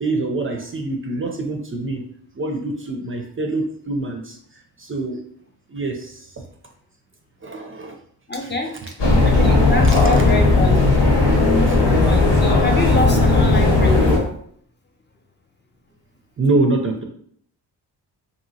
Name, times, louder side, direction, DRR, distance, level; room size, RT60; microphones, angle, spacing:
voice 1, 0.0-2.0 2.4-4.4 4.8-5.2 5.7-6.4 7.4-8.0 8.4-8.5 8.8-9.2 9.8-10.0 11.7-11.8 13.2-13.3 16.4-17.0, right 2 dB, 30° right, 3 dB, 0.4 m, -25 dB
voice 2, 8.3-8.8 9.2-11.0 11.7-14.3, left 2 dB, 25° left, 2 dB, 0.5 m, -26 dB
sound 1, 9.0-14.2, left 2 dB, 70° left, 1.1 m, -15 dB
2.8 x 2.7 x 2.7 m, 0.64 s
cardioid pair, 60°, 44 cm